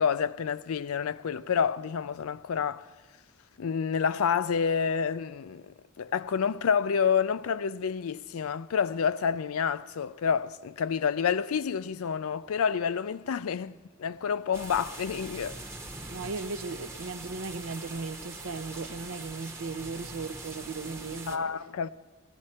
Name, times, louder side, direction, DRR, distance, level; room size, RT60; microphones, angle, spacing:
voice 1, 0.0-2.9 3.6-13.7 14.0-15.6 21.3-21.9, left 6 dB, 80° left, 0.4 m, -28 dB
sound 1, 14.5-21.4, right 2 dB, 10° right, 0.9 m, -42 dB
voice 2, 16.1-21.5, right 4 dB, 75° right, 0.6 m, -37 dB
20.0 x 15.5 x 4.3 m
head